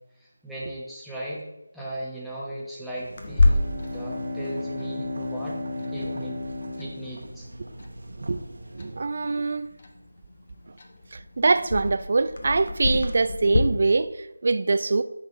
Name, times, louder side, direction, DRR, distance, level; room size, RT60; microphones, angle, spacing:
voice 1, 0.2-1.4 1.7-3.6 3.9-5.6 5.9-6.4 6.8-7.5, right 1 dB, ahead, 0.9 m, -37 dB
sound 1, 2.9-9.1, right 1 dB, 60° right, 1.0 m, -43 dB
Clock, 3.2-13.6, left 2 dB, 40° left, 0.8 m, -30 dB
Bowed string instrument, 3.2-7.8, left 2 dB, 25° left, 1.8 m, -34 dB
voice 2, 8.7-9.7 11.1-15.0, right 3 dB, 45° right, 0.3 m, -23 dB
9.2 x 3.8 x 3.2 m
figure-of-eight pair, 160°, 0 cm